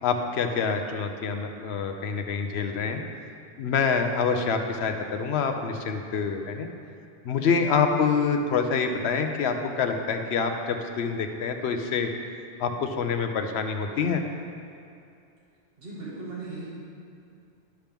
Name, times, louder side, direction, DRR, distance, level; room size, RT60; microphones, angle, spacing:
voice 1, 0.0-3.0 3.6-6.7 7.2-12.1 12.6-14.2, left 5 dB, 80° left, 5 dB, 0.9 m, -26 dB
voice 2, 15.8-16.7, right 3 dB, 65° right, -8 dB, 2.0 m, -37 dB
11.5 x 5.8 x 3.5 m, 2.5 s
omnidirectional pair, 1.1 m